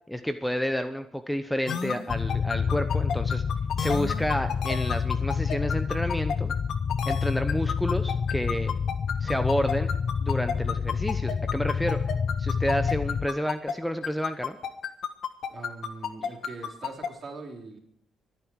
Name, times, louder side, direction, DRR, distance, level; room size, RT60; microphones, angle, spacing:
voice 1, 0.1-3.4 3.8-6.5 7.1-8.7 9.2-9.9 10.2-12.0 12.4-14.6, equal, 5° left, 9 dB, 0.8 m, -30 dB
sound 1, 1.7-13.7 14.0-17.1, left 7 dB, 65° left, 1.5 m, -31 dB
sound 2, 2.1-13.3, left 6 dB, 45° left, 0.5 m, -28 dB
voice 2, 15.5-17.8, right 3 dB, 45° right, 0 dB, 4.1 m, -42 dB
25.0 x 9.5 x 4.7 m, 0.72 s
cardioid pair, 90°, 0 cm